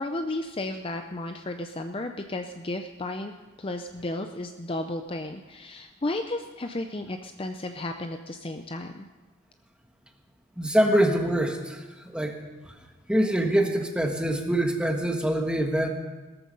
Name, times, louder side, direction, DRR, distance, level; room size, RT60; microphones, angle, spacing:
voice 1, 0.0-3.3 3.6-9.1, left 2 dB, 25° left, 6 dB, 0.5 m, -33 dB
voice 2, 10.6-12.4 12.6-12.7 13.1-15.9, right 1 dB, 5° right, 3 dB, 1.5 m, -24 dB
18.0 x 14.0 x 5.4 m, 1.2 s
head